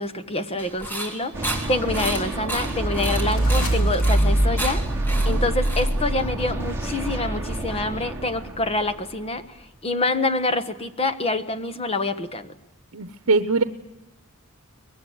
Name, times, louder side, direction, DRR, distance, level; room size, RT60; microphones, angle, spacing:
voice 1, 0.0-4.8 5.2-9.6 9.8-12.5, left 2 dB, 25° left, 10 dB, 1.2 m, -26 dB
sound 1, 0.6-6.3, right 1 dB, 10° left, 3.3 m, -33 dB
sound 2, 1.3-9.5, right 1 dB, 10° right, 3.3 m, -31 dB
sound 3, 2.4-6.6, right 1 dB, 75° left, 3.1 m, -23 dB
voice 2, 5.2-5.5 12.9-13.6, right 3 dB, 80° right, 10 dB, 0.9 m, -23 dB
24.0 x 21.0 x 9.4 m, 0.96 s
head